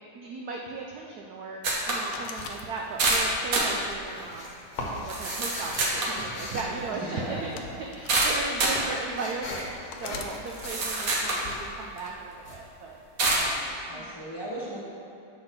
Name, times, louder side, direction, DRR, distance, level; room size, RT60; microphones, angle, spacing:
voice 1, 0.1-1.6 1.9-7.6 7.9-13.0 13.9-14.0, right 4 dB, 75° right, 0 dB, 0.9 m, -37 dB
sound 1, 1.6-2.1 2.4-2.5 3.0-3.7 4.4-4.5 5.1-6.2 8.1-8.8 9.6-9.7 10.3-11.4 12.0-12.1 13.2-13.5, right 2 dB, 55° right, 1.2 m, -26 dB
Window with handle (open & close), 2.1-3.2 3.8-5.0 5.9-6.2 7.2-8.3 9.0-9.1 9.9-10.3 11.3-11.7, left 6 dB, 75° left, 0.9 m, -43 dB
sound 2, 2.8-3.3 3.6-7.7 8.0-13.5, left 2 dB, 55° left, 1.3 m, -40 dB
voice 2, 6.9-7.5 13.3-14.8, equal, 15° left, -9 dB, 1.3 m, -37 dB
7.6 x 4.1 x 5.6 m, 2.8 s
omnidirectional pair, 2.2 m